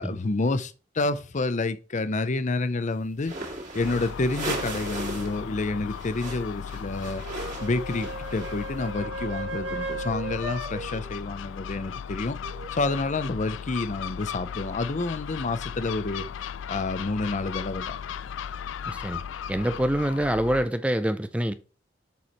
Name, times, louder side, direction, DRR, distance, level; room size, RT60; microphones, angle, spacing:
voice 1, 0.0-7.2 7.6-12.4 12.7-16.2 16.7-18.0, left 3 dB, 40° left, 0.6 m, -29 dB
sound 1, 3.2-5.4 5.7-8.8, right 2 dB, 45° right, 2.4 m, -37 dB
Gull seagull, 3.8-20.7, left 7 dB, 90° left, 0.4 m, -37 dB
sound 2, 7.2-11.0 12.4-13.0, right 3 dB, 65° right, 1.7 m, -36 dB
voice 2, 18.9-19.2 19.5-21.5, right 1 dB, 5° right, 0.4 m, -26 dB
6.9 x 4.8 x 4.3 m
head